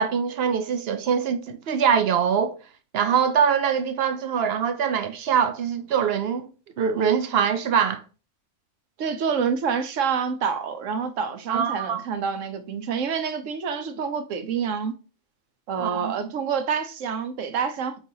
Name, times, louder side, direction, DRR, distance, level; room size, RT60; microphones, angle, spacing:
voice 1, 0.0-2.5 2.9-6.5 6.8-8.0 11.5-12.0 15.8-16.1, right 7 dB, 60° right, 0.8 m, -23 dB
voice 2, 9.0-14.9 15.7-18.0, right 6 dB, 85° right, 1.1 m, -27 dB
4.8 x 4.0 x 2.7 m
omnidirectional pair, 1.3 m